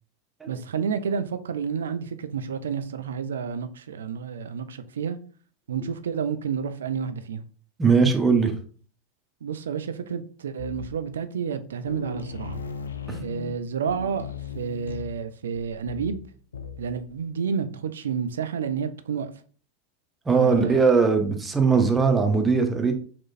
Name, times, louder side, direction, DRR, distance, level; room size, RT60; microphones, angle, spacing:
voice 1, 0.5-5.2 5.7-7.4 9.4-12.6 13.2-16.2 16.8-19.3 20.4-20.8, right 6 dB, 70° right, 0.3 m, -30 dB
voice 2, 7.8-8.5 13.1-13.2 20.3-22.9, right 5 dB, 15° right, 0.8 m, -20 dB
sound 1, 10.6-11.2 11.5-11.6 11.9-17.2, left 5 dB, 80° left, 0.4 m, -37 dB
4.2 x 3.0 x 2.5 m
figure-of-eight pair, 85°, 0 cm